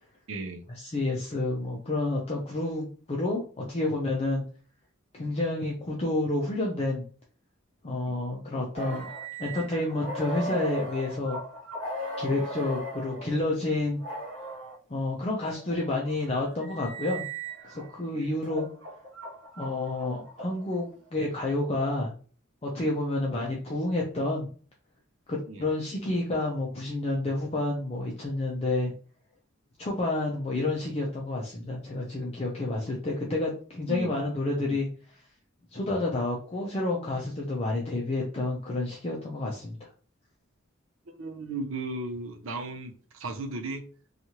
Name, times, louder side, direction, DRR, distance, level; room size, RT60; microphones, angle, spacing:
voice 1, 0.3-0.6 8.1-8.2 12.3-12.4 18.1-18.3 25.5-25.7 33.9-34.1 34.6-34.8 35.8-36.0 41.1-43.9, right 2 dB, 80° right, 6 dB, 0.5 m, -36 dB
voice 2, 0.8-4.4 5.1-7.0 7.8-9.1 9.4-11.4 12.2-14.0 14.9-17.2 17.6-18.7 19.6-22.1 22.6-24.5 25.3-28.9 29.8-34.9 35.7-39.9, left 2 dB, 30° left, -2 dB, 0.5 m, -29 dB
sound 1, 8.7-13.3 14.0-14.8 15.5-17.9 18.4-20.8, right 1 dB, 65° right, 0.9 m, -38 dB
2.9 x 2.4 x 2.8 m, 0.40 s
head